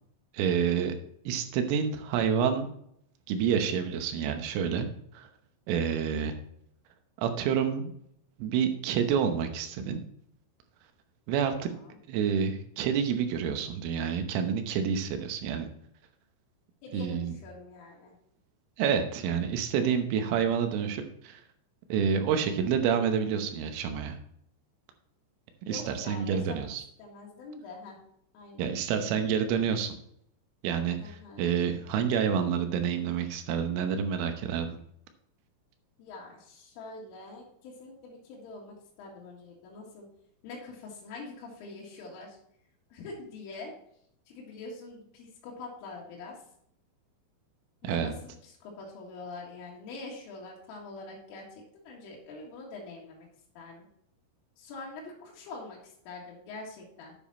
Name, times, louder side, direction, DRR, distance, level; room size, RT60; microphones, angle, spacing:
voice 1, 0.3-1.0 1.3-2.7 3.3-4.9 5.2-5.3 5.7-6.3 7.2-7.9 8.4-10.0 11.3-11.7 12.1-15.7 16.9-17.3 18.8-21.4 21.9-24.2 25.7-26.8 28.6-30.0 30.6-34.7 47.8-48.1, right 7 dB, 85° right, 7 dB, 3.6 m, -28 dB
voice 2, 11.5-12.0 16.8-18.1 25.7-26.7 27.0-28.0 28.3-28.7 31.0-31.5 36.0-40.1 40.4-42.4 42.9-43.7 44.3-46.4 47.8-53.3 53.6-53.9 54.6-57.2, left 3 dB, 80° left, -3 dB, 4.3 m, -44 dB
9.9 x 7.1 x 4.1 m, 0.70 s
omnidirectional pair, 5.7 m